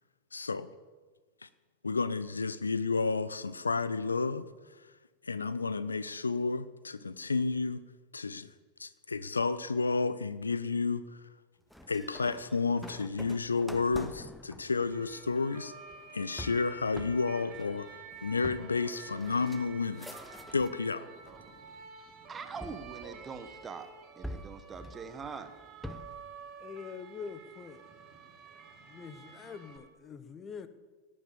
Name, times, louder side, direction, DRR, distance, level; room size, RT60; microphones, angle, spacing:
voice 1, 0.3-0.7 1.4-1.5 1.8-4.5 5.2-7.8 8.1-8.5 8.8-11.0 11.9-15.7 16.1-21.1, left 4 dB, 75° left, 0.6 m, -31 dB
sound 1, 11.7-20.9 21.2-21.9 22.6-23.7 24.2-26.3, left 1 dB, ahead, 0.8 m, -47 dB
sound 2, 14.7-29.8, right 6 dB, 35° right, 2.9 m, -50 dB
voice 2, 22.3-23.9 24.2-25.5, right 5 dB, 20° right, 1.5 m, -43 dB
voice 3, 26.6-27.8 28.9-30.7, left 6 dB, 25° left, 1.0 m, -44 dB
18.0 x 8.7 x 7.1 m
figure-of-eight pair, 90°, 0 cm